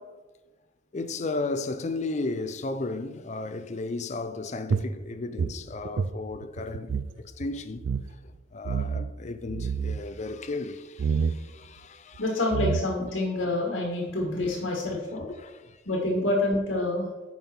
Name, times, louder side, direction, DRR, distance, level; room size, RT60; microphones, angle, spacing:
voice 1, 0.9-7.8 8.2-12.3 13.0-13.1 14.4-14.5 14.8-15.8 16.2-16.3, left 3 dB, 35° left, 0.5 m, -35 dB
sound 1, 4.7-7.1 7.4-7.5 7.8-8.1 8.6-9.1 9.5-10.0 11.0-11.4 12.1-12.2 12.5-13.1, right 5 dB, 65° right, 0.4 m, -28 dB
voice 2, 12.2-15.3 15.8-17.1, left 2 dB, 85° left, 1.6 m, -27 dB
9.3 x 5.4 x 4.4 m
head